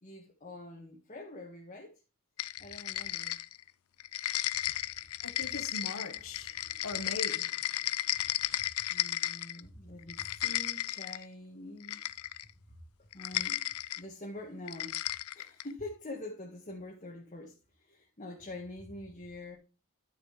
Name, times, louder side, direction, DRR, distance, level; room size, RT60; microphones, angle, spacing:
voice 1, 0.0-1.9 2.6-3.4 8.9-12.0 12.7-12.8 13.1-13.6 13.9-15.0 15.3-19.6, left 1 dB, 35° left, 1.7 m, -45 dB
sound 1, 2.4-3.7 4.0-9.6 10.0-11.2 11.8-12.5 13.1-14.0 14.7-15.7, left 14 dB, 85° left, 0.5 m, -34 dB
voice 2, 5.2-6.6 6.8-7.5, left 3 dB, 65° left, 1.2 m, -40 dB
11.5 x 6.8 x 3.2 m
head